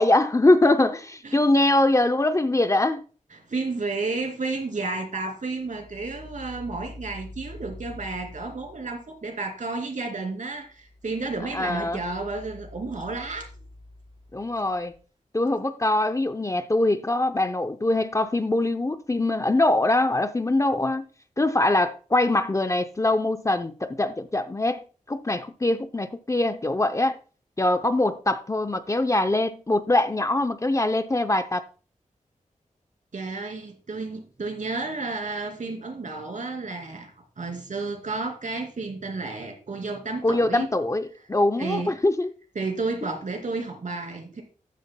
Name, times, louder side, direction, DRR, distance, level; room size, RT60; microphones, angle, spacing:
voice 1, 0.0-3.0 11.5-12.0 14.3-14.9 15.3-21.0 21.4-24.8 25.1-27.2 27.6-31.6 40.2-42.3, left 2 dB, 25° left, 0.6 m, -23 dB
voice 2, 3.3-13.5 33.1-40.7 41.6-42.0 42.5-44.4, right 3 dB, 65° right, 2.8 m, -32 dB
sound 1, 5.6-9.3 10.6-15.0, left 1 dB, 40° right, 3.9 m, -45 dB
13.5 x 9.5 x 2.2 m
wide cardioid pair, 100°, 14 cm